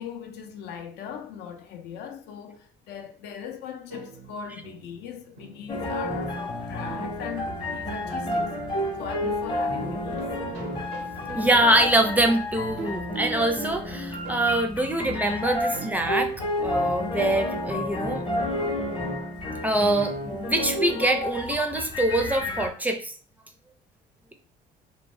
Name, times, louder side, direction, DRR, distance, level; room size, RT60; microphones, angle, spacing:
voice 1, 0.0-8.5 9.0-10.3, left 7 dB, 80° left, 0.5 m, -39 dB
sound 1, 3.9-17.5, right 4 dB, 80° right, 0.5 m, -44 dB
sound 2, 5.7-22.7, left 1 dB, 30° left, 0.7 m, -30 dB
voice 2, 11.4-16.3 16.6-18.2 19.6-23.1, right 1 dB, 10° right, 0.4 m, -24 dB
2.6 x 2.1 x 3.0 m
cardioid pair, 110°, 17 cm